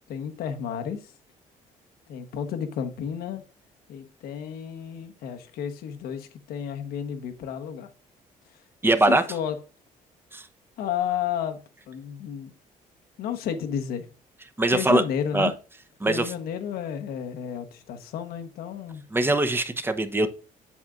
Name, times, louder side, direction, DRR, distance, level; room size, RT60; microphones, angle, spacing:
voice 1, 0.1-1.1 2.1-3.4 3.9-7.9 9.1-9.6 10.8-11.6 11.9-12.5 13.2-14.1 14.7-15.5 16.1-19.0, left 8 dB, 80° left, 1.2 m, -32 dB
voice 2, 8.8-9.2 10.3-10.5 14.6-15.0 15.3-15.5 16.0-16.3 19.1-20.3, right 2 dB, 15° right, 0.9 m, -22 dB
8.4 x 7.2 x 2.5 m
cardioid pair, 90°, 16 cm